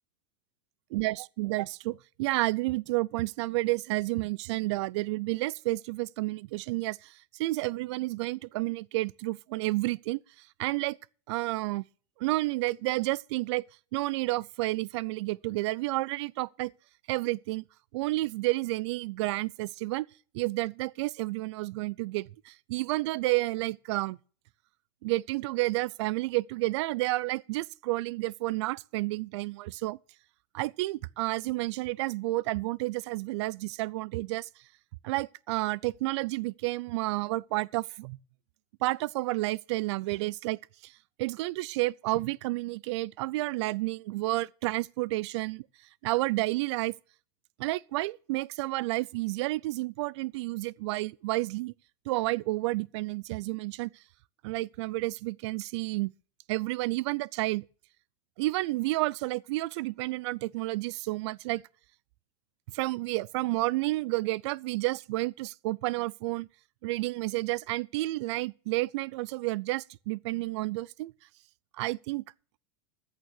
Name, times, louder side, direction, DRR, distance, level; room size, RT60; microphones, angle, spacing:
voice 1, 0.9-11.0 11.3-11.8 12.2-13.6 13.9-16.7 17.1-17.6 17.9-20.1 20.3-24.2 25.0-30.0 30.5-34.5 35.0-38.2 38.8-45.7 46.0-46.9 47.6-51.7 52.1-53.9 54.4-56.1 56.5-57.6 58.4-61.6 62.7-66.5 66.8-71.1 71.8-72.2, right 20 dB, 65° right, 0.5 m, -30 dB
14.5 x 6.7 x 6.4 m
supercardioid pair, 125°, 16 cm